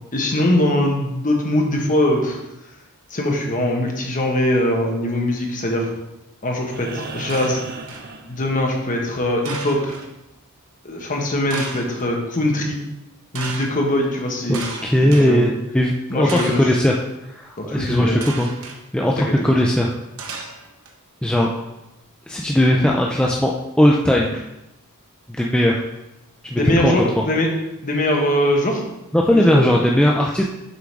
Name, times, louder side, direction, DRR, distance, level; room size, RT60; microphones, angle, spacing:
voice 1, 0.1-2.4 3.1-5.9 6.4-7.6 8.3-9.9 10.8-12.8 13.3-15.5 16.1-16.7 17.6-18.2 19.2-19.5 26.5-27.5 27.8-28.8 29.3-29.6, left 1 dB, 35° left, 1 dB, 1.2 m, -21 dB
sound 1, 6.6-9.0 10.8-10.9, right 3 dB, 45° right, 0.6 m, -36 dB
sound 2, 7.3-8.1 9.4-10.1 11.5-12.0 13.3-13.7 14.5-15.3 16.3-16.8 18.2-18.8 20.2-20.9, right 4 dB, 70° right, 0.9 m, -33 dB
voice 2, 14.5-17.0 17.3-18.5 18.9-19.9 21.2-21.5 22.3-23.5 23.8-24.4 25.4-25.8 26.5-27.2 29.1-30.4, equal, 5° left, -1 dB, 0.4 m, -18 dB
6.8 x 3.8 x 4.6 m, 0.92 s
head